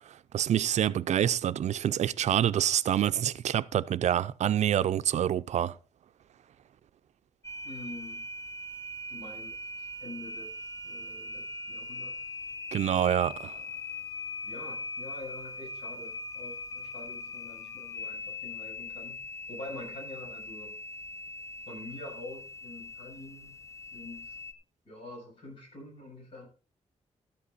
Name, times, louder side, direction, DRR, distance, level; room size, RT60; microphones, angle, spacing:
voice 1, 0.3-5.8 12.7-13.6, right 10 dB, 70° right, 0.5 m, -27 dB
sound 1, 7.4-24.5, left 2 dB, 25° left, 0.8 m, -41 dB
voice 2, 7.6-8.3 9.1-10.5 10.8-12.1 14.4-19.2 19.5-20.8 21.7-23.6 23.9-24.4 24.9-26.5, left 2 dB, 45° left, 6.9 m, -46 dB
12.5 x 8.5 x 4.0 m
wide cardioid pair, 170°, 12 cm